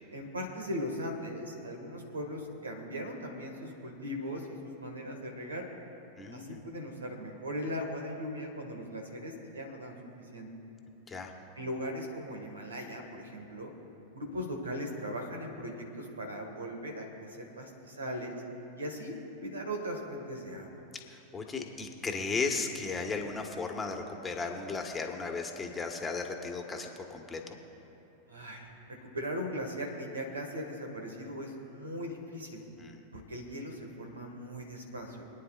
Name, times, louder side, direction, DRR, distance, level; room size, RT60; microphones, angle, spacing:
voice 1, 0.1-5.6 6.3-10.0 10.3-10.5 11.6-13.7 14.1-18.4 18.8-19.1 19.4-20.8 28.3-32.6 33.1-35.2, equal, 85° right, 2 dB, 1.8 m, -39 dB
voice 2, 6.2-6.6 11.1-11.3 21.1-27.6 32.8-33.0, left 4 dB, 20° left, 3 dB, 1.4 m, -35 dB
25.5 x 9.6 x 2.5 m, 2.9 s
figure-of-eight pair, 95°, 0 cm